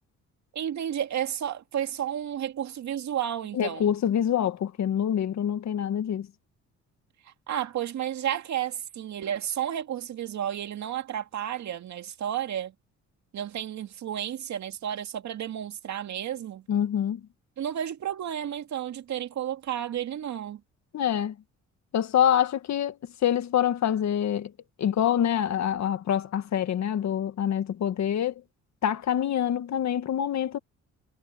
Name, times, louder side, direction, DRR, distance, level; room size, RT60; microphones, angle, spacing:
voice 1, 0.5-3.9 7.5-12.7 13.3-16.6 17.6-20.6, right 10 dB, 65° right, 2.2 m, -32 dB
voice 2, 3.5-6.3 16.7-17.2 20.9-21.3 21.9-22.9 23.2-24.5 24.8-28.3 28.8-30.6, left 9 dB, 65° left, 1.8 m, -26 dB
cardioid pair, 90°, 30 cm